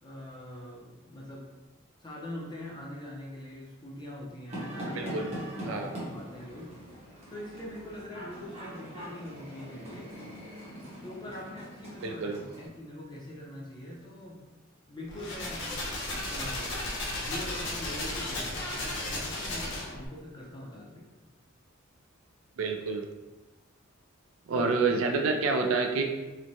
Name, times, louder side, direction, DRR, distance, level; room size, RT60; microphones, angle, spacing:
voice 1, 0.0-1.4 2.0-6.7 7.3-10.1 11.0-14.5 14.9-16.7 17.2-21.0 24.5-24.7, left 1 dB, 20° left, -3 dB, 0.5 m, -43 dB
sound 1, 4.5-12.7, equal, 30° right, 0.8 m, -42 dB
voice 2, 4.9-5.3 5.6-5.9 12.0-12.4 22.6-23.1 24.5-26.0, right 4 dB, 70° right, 3 dB, 0.3 m, -28 dB
sound 2, 15.1-20.1, left 1 dB, 60° left, 0.6 m, -34 dB
3.1 x 2.1 x 2.6 m, 1.1 s
head